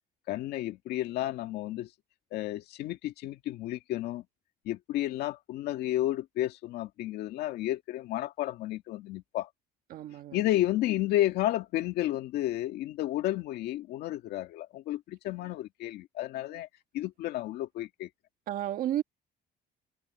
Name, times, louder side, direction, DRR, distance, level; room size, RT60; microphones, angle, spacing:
voice 1, 0.3-1.9 2.3-4.2 4.7-9.5 10.3-16.7 16.9-18.1, left 14 dB, 75° left, 1.9 m, -32 dB
voice 2, 9.9-10.4 16.5-16.6 18.5-19.0, right 12 dB, 55° right, 1.7 m, -32 dB
cardioid pair, 180°, 17 cm